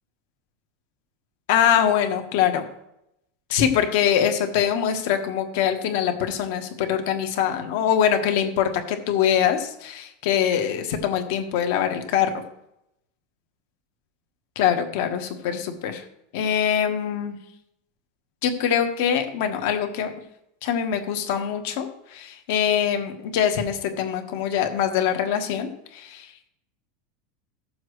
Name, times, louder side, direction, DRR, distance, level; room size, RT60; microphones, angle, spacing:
voice 1, 1.5-2.6 3.5-12.4 14.5-16.0 16.3-17.4 18.4-20.1 20.6-26.3, left 9 dB, 55° left, 6 dB, 1.4 m, -23 dB
16.5 x 7.2 x 3.2 m, 0.81 s
supercardioid pair, 175°, 0 cm